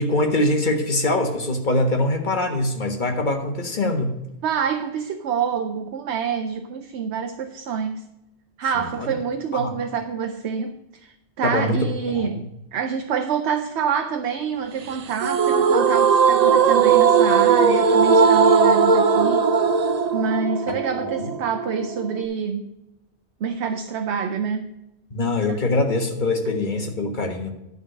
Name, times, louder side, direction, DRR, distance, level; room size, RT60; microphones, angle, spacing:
voice 1, 0.0-4.2 8.7-9.1 9.5-9.7 11.4-12.3 20.7-21.2 25.1-27.5, left 2 dB, 45° left, 4 dB, 1.5 m, -23 dB
voice 2, 4.4-8.0 8.6-19.5 20.1-22.6 23.4-24.7 25.5-25.6, right 6 dB, 75° right, 6 dB, 1.0 m, -27 dB
sound 1, 15.2-22.3, right 5 dB, 45° right, 0.5 m, -18 dB
11.0 x 4.1 x 7.7 m, 0.89 s
omnidirectional pair, 1.2 m